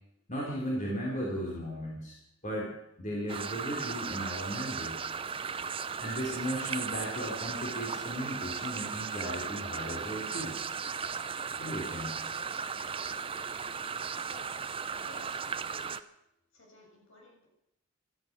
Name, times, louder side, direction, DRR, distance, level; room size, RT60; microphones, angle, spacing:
voice 1, 0.3-2.1 2.4-2.7 3.0-4.9 6.0-10.5 11.6-12.2, equal, 35° left, -3 dB, 3.9 m, -36 dB
sound 1, 3.3-16.0, right 6 dB, 25° right, 0.6 m, -36 dB
voice 2, 14.2-14.5 15.0-16.0 16.5-17.5, left 1 dB, 65° left, -1 dB, 6.8 m, -55 dB
16.5 x 13.5 x 6.2 m, 0.81 s
head